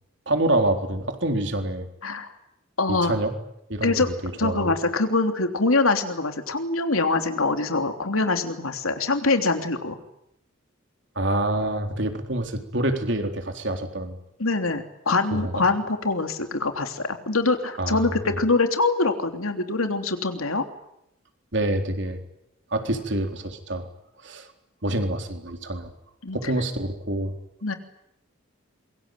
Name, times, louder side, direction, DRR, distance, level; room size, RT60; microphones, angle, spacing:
voice 1, 0.3-1.8 2.9-3.3 3.7-4.1 4.4-4.7 11.2-14.2 15.3-15.6 17.8-18.4 21.5-22.2 22.7-23.9 24.2-24.5 24.8-25.9 26.3-27.3, right 1 dB, 55° right, 5 dB, 4.0 m, -26 dB
voice 2, 2.8-3.1 3.8-4.1 4.4-10.0 14.4-20.6 26.2-26.5 27.6-27.7, left 3 dB, 85° left, 6 dB, 3.3 m, -24 dB
26.5 x 23.5 x 9.3 m, 0.81 s
head